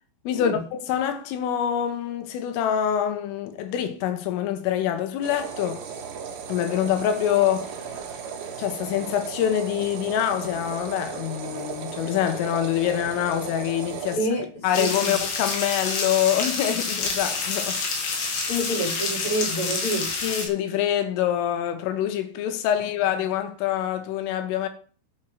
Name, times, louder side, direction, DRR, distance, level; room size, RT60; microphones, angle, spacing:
voice 1, 0.3-5.9 6.5-7.7 8.6-14.3 14.6-17.8 20.2-24.7, left 10 dB, 90° left, 4.0 m, -25 dB
sound 1, 5.2-14.2, right 7 dB, 65° right, 3.9 m, -36 dB
voice 2, 14.1-14.4 14.7-15.1 18.5-20.1, right 1 dB, 35° left, 7.5 m, -27 dB
sound 2, 14.7-20.5, left 4 dB, 65° left, 5.0 m, -28 dB
10.5 x 7.5 x 6.6 m
omnidirectional pair, 5.6 m